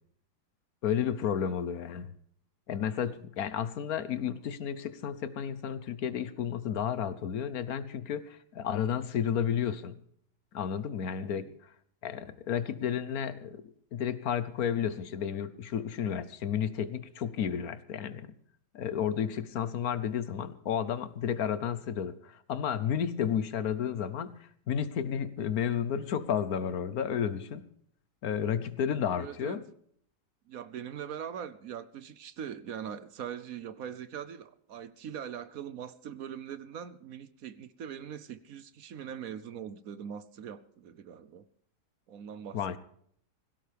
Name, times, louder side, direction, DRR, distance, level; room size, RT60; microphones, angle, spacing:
voice 1, 0.8-2.1 2.7-10.0 10.5-11.5 12.0-13.6 13.9-18.3 18.7-27.6 28.2-29.6 42.5-42.8, left 8 dB, 65° left, 15 dB, 1.3 m, -32 dB
voice 2, 29.2-29.6 30.5-41.5 42.1-42.8, right 8 dB, 65° right, 15 dB, 1.1 m, -42 dB
17.0 x 16.5 x 3.4 m, 0.64 s
omnidirectional pair, 1.7 m